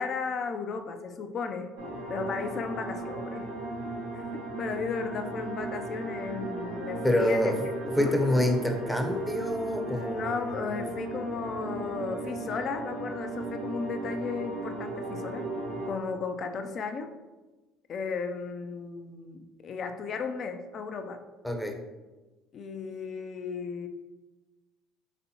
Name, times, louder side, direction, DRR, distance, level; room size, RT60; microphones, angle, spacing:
voice 1, 0.0-1.8 2.1-3.5 4.1-4.2 4.6-7.5 7.9-8.2 9.8-15.5 15.9-17.1 17.9-21.2 22.5-23.9, left 5 dB, 50° left, 7 dB, 0.4 m, -35 dB
sound 1, 1.8-15.9, right 2 dB, 90° right, 1.1 m, -36 dB
voice 2, 7.0-7.6 7.8-10.5 21.4-21.8, left 1 dB, ahead, 3 dB, 0.7 m, -27 dB
4.1 x 3.3 x 2.8 m, 1.2 s
hypercardioid pair, 70°, 0 cm